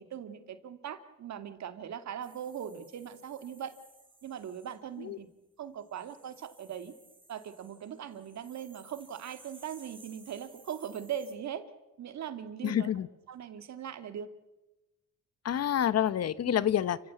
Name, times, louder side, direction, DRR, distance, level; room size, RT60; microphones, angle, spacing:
voice 1, 0.0-3.7 4.2-5.3 5.6-6.9 7.3-11.6 12.0-12.9 13.3-14.3 16.5-16.7, right 9 dB, 65° right, 9 dB, 2.4 m, -40 dB
sound 1, 2.2-4.8 5.8-11.3, right 3 dB, 15° right, 4.9 m, -58 dB
voice 2, 12.6-13.1 15.4-17.0, left 10 dB, 55° left, 17 dB, 1.0 m, -28 dB
30.0 x 15.5 x 8.5 m, 1.0 s
cardioid pair, 90°, 30 cm